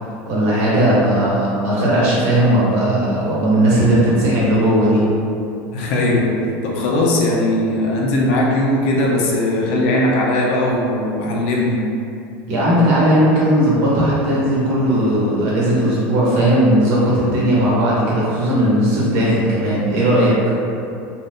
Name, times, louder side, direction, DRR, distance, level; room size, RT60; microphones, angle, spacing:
voice 1, 0.3-5.0 12.5-20.4, right 1 dB, 55° right, -6 dB, 1.0 m, -16 dB
voice 2, 5.7-11.8, left 1 dB, 80° left, -3 dB, 0.5 m, -19 dB
2.5 x 2.4 x 3.4 m, 2.6 s
cardioid pair, 155°, 6 cm